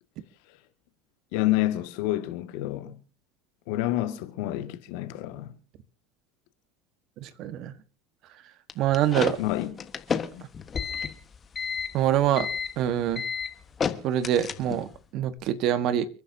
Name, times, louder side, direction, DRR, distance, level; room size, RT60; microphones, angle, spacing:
voice 1, 1.3-3.0 3.7-5.5 9.4-9.7, left 15 dB, 70° left, 1.9 m, -28 dB
voice 2, 7.2-7.7 8.8-9.4 11.9-12.5 12.8-13.2 14.0-16.1, right 11 dB, 55° right, 1.4 m, -25 dB
sound 1, 8.7-15.0, left 6 dB, 25° left, 1.4 m, -31 dB
30.0 x 10.5 x 2.8 m
supercardioid pair, 120°, 0 cm